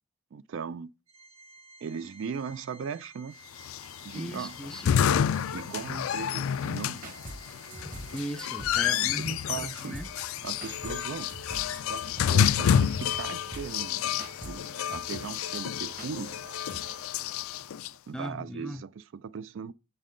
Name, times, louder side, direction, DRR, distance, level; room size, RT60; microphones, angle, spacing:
voice 1, 0.3-0.9 1.8-3.3 4.0-4.5 5.5-7.0 8.9-10.0 10.4-11.3 11.9-14.0 14.5-14.6 14.9-16.3 18.1-19.7, right 6 dB, 65° right, 0.3 m, -38 dB
Organ, 1.1-11.7, right 2 dB, 90° right, 1.5 m, -54 dB
sound 1, 3.6-17.9, left 8 dB, 80° left, 0.3 m, -29 dB
voice 2, 4.1-4.9 5.4-5.5 8.1-10.1 18.1-18.8, equal, 5° left, 0.4 m, -38 dB
sound 2, 6.9-17.1, right 1 dB, 40° right, 1.4 m, -46 dB
7.4 x 5.4 x 3.8 m
head